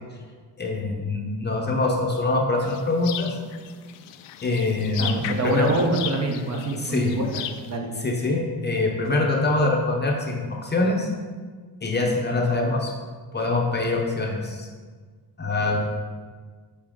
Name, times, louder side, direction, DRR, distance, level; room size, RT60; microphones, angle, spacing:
voice 1, 0.6-3.3 4.4-5.7 6.8-7.2 8.0-11.1 11.8-12.9 13.3-14.7 15.4-15.8, left 2 dB, 25° left, 0 dB, 0.7 m, -24 dB
sound 1, 2.6-7.8, left 11 dB, 85° left, 0.5 m, -36 dB
voice 2, 5.0-7.4 7.7-7.9, right 2 dB, 40° right, 1 dB, 0.9 m, -25 dB
7.3 x 4.2 x 3.7 m, 1.5 s
cardioid pair, 135°, 42 cm